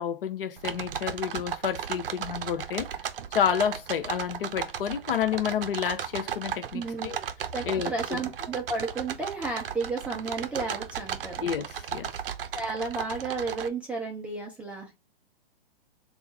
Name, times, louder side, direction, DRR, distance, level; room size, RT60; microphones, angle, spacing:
voice 1, 0.0-2.9 3.3-7.2 7.6-7.9 11.4-12.1, left 8 dB, 65° left, 0.7 m, -29 dB
sound 1, 0.6-13.7, right 8 dB, 65° right, 0.6 m, -35 dB
voice 2, 6.7-7.2 7.5-11.5 12.5-15.0, right 3 dB, 5° right, 0.3 m, -33 dB
3.4 x 2.3 x 3.9 m
hypercardioid pair, 125°, 30 cm